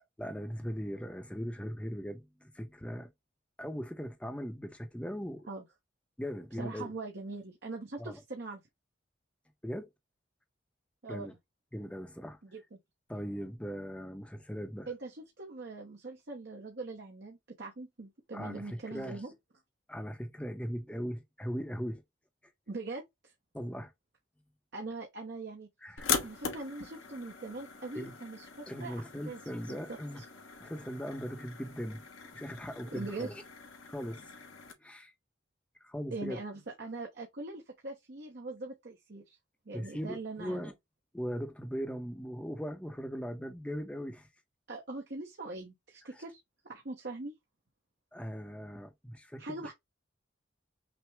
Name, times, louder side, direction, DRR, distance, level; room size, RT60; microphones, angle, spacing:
voice 1, 0.2-3.1 3.6-5.5 6.2-6.9 8.0-8.2 9.6-9.9 11.1-11.3 11.7-12.4 13.1-14.9 18.3-19.2 19.9-22.0 23.5-23.9 25.8-26.1 27.9-28.1 28.7-30.2 30.6-32.0 32.3-33.4 33.9-34.2 34.8-35.1 35.8-36.4 39.7-40.7 41.1-44.3 48.1-49.7, equal, 5° left, 0.7 m, -39 dB
voice 2, 6.6-8.6 11.0-11.3 12.4-12.8 14.9-19.3 22.7-23.3 24.7-25.7 26.0-28.9 29.3-29.4 29.7-29.8 30.2-30.3 32.9-33.3 36.1-39.4 39.7-40.7 44.7-46.4 46.6-47.3 49.4-49.7, right 3 dB, 55° right, 0.8 m, -42 dB
sound 1, 26.0-34.7, left 6 dB, 80° left, 1.1 m, -41 dB
6.0 x 2.1 x 3.3 m
head